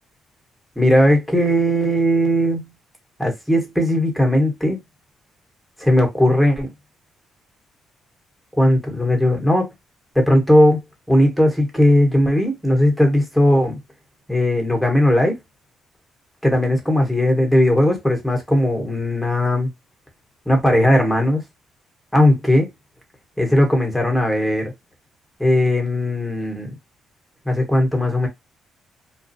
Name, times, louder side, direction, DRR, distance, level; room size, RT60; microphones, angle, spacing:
voice 1, 0.8-2.7 3.2-4.8 5.8-6.7 8.6-9.7 10.1-13.8 14.3-15.4 16.4-19.7 20.5-21.4 22.1-22.7 23.4-24.7 25.4-26.7 27.4-28.3, left 1 dB, 5° left, 1.2 m, -17 dB
2.4 x 2.3 x 2.6 m
cardioid pair, 90°, 0 cm